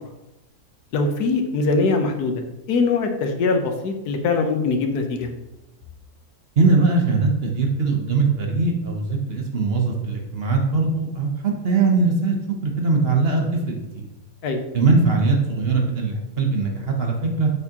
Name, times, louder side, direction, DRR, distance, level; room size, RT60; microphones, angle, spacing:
voice 1, 0.9-5.3 14.4-14.6, left 3 dB, 85° left, 5 dB, 1.4 m, -22 dB
voice 2, 6.6-12.4 12.6-14.1 14.7-17.5, right 3 dB, 45° right, 1 dB, 1.0 m, -21 dB
7.0 x 6.4 x 2.9 m, 0.98 s
omnidirectional pair, 1.6 m